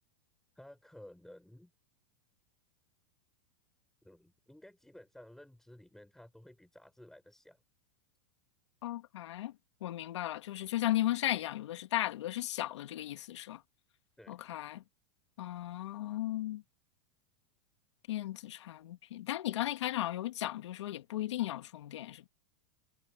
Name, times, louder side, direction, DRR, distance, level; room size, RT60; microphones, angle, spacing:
voice 1, 0.6-1.7 4.0-7.6 14.2-14.4, left 1 dB, 5° left, 5.5 m, -55 dB
voice 2, 8.8-9.5 9.8-13.6 14.3-14.8 15.4-16.6 18.1-22.3, left 14 dB, 80° left, 2.1 m, -35 dB
supercardioid pair, 130°, 15 cm